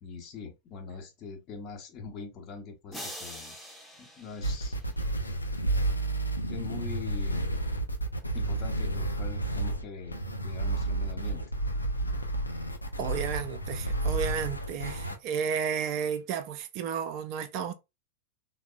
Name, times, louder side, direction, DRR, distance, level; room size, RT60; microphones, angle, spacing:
voice 1, 0.0-3.6 4.0-4.8 6.5-7.5 8.3-11.4, left 5 dB, 35° left, 0.8 m, -43 dB
sound 1, 2.9-5.3, equal, ahead, 0.7 m, -44 dB
sound 2, 4.4-15.2, right 2 dB, 85° left, 0.4 m, -31 dB
voice 2, 13.0-17.7, right 7 dB, 40° right, 0.3 m, -32 dB
3.3 x 2.0 x 2.4 m
figure-of-eight pair, 90°, 0 cm